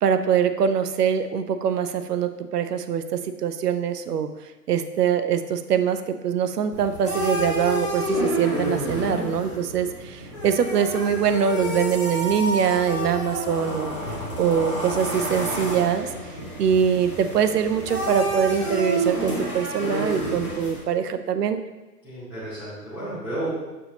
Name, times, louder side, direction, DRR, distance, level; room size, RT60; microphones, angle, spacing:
voice 1, 0.0-4.3 4.7-13.9 14.4-16.1 16.6-21.6, right 7 dB, 70° right, 9 dB, 0.6 m, -23 dB
sound 1, 6.7-20.8, equal, 20° left, 0.4 m, -29 dB
voice 2, 22.0-23.5, right 1 dB, 5° right, -15 dB, 0.8 m, -32 dB
6.1 x 2.9 x 2.8 m, 1.1 s
hypercardioid pair, 145°, 49 cm